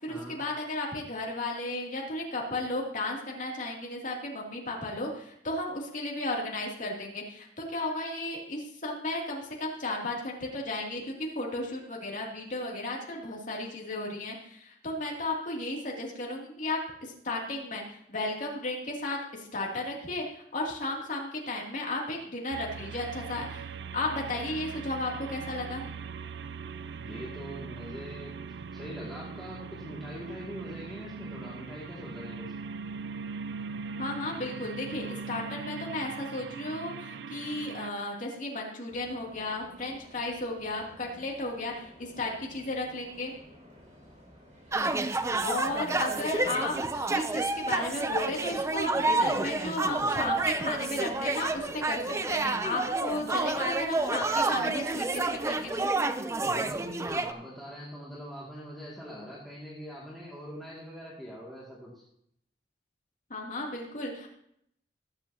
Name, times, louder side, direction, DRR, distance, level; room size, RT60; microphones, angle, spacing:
voice 1, 0.0-23.7 23.9-25.8 34.0-43.3 45.4-55.9 63.3-64.3, left 2 dB, 50° left, -2 dB, 2.7 m, -34 dB
sound 1, 22.5-37.9, right 5 dB, 70° right, 0.4 m, -40 dB
voice 2, 26.9-28.3 28.7-32.5 56.4-61.9, equal, ahead, -7 dB, 2.2 m, -42 dB
sound 2, 38.9-55.8, equal, 45° right, 3.5 m, -52 dB
sound 3, 44.7-57.3, right 3 dB, 15° right, 0.5 m, -29 dB
20.0 x 8.2 x 2.8 m, 0.71 s
head